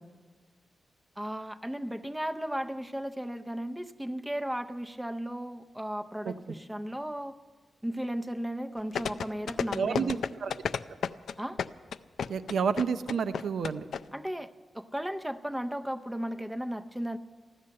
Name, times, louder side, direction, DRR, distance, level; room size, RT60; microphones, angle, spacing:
voice 1, 1.2-7.4 7.8-10.3 11.4-11.6 14.1-17.2, equal, 5° right, 7 dB, 0.5 m, -35 dB
sound 1, 8.9-14.0 14.3-14.4, left 7 dB, 80° left, 0.4 m, -31 dB
voice 2, 9.7-10.5 12.3-13.9, right 6 dB, 70° right, 12 dB, 0.6 m, -30 dB
14.5 x 12.0 x 7.6 m, 1.4 s
wide cardioid pair, 155°, 0 cm